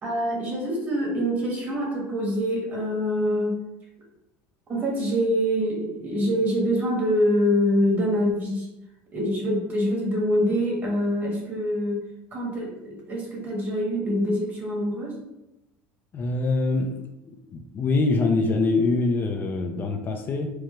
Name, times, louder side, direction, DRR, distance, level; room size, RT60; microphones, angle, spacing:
voice 1, 0.0-3.6 4.7-8.7 9.1-12.0 12.3-15.2, equal, 30° right, -2 dB, 1.5 m, -25 dB
voice 2, 16.1-16.9 17.3-20.5, left 3 dB, 35° left, 3 dB, 0.5 m, -24 dB
4.5 x 2.3 x 3.1 m, 0.91 s
supercardioid pair, 115°, 6 cm